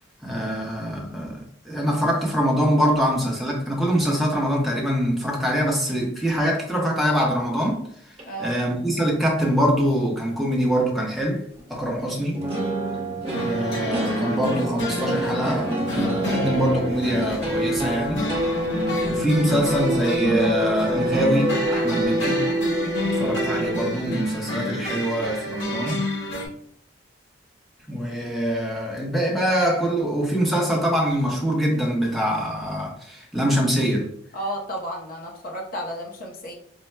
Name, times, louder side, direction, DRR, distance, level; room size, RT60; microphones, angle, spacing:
voice 1, 0.2-7.8 8.4-11.4 11.7-12.4 13.4-18.3 19.1-22.4 23.1-26.0 27.9-34.1, equal, ahead, 0.8 m, -24 dB
voice 2, 8.2-8.6 24.9-25.0 34.3-36.5, right 1 dB, 45° left, 0.7 m, -33 dB
sound 1, 8.2-8.3 11.6-11.7 12.3-24.2, right 1 dB, 30° right, 0.8 m, -26 dB
sound 2, 13.2-26.5, equal, 70° left, 1.1 m, -30 dB
5.4 x 2.1 x 2.2 m
head